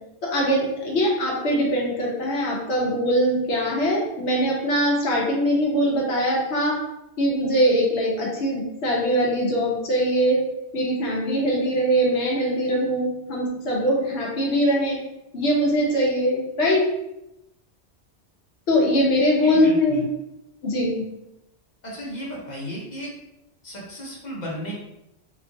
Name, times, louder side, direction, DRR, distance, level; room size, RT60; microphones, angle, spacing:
voice 1, 0.2-6.8 7.2-10.4 10.7-15.0 15.3-16.8 18.7-20.0 20.6-21.0, equal, 80° left, -3 dB, 1.0 m, -22 dB
voice 2, 19.4-20.0 21.8-23.1 23.6-24.7, equal, 45° left, -4 dB, 0.9 m, -34 dB
2.9 x 2.3 x 2.6 m, 0.88 s
omnidirectional pair, 1.1 m